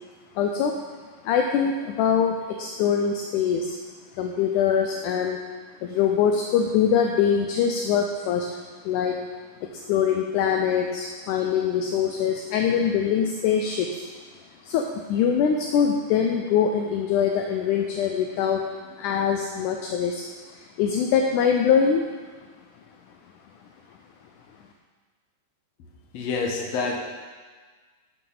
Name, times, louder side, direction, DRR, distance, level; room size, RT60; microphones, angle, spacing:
voice 1, 0.4-0.7 1.3-3.8 4.2-5.4 5.8-8.5 8.9-9.2 9.7-14.0 14.6-18.6 19.0-22.1, left 7 dB, 80° left, 2 dB, 1.9 m, -23 dB
voice 2, 26.1-27.0, left 4 dB, 60° left, 0 dB, 1.9 m, -27 dB
12.5 x 6.6 x 3.9 m, 1.5 s
omnidirectional pair, 4.0 m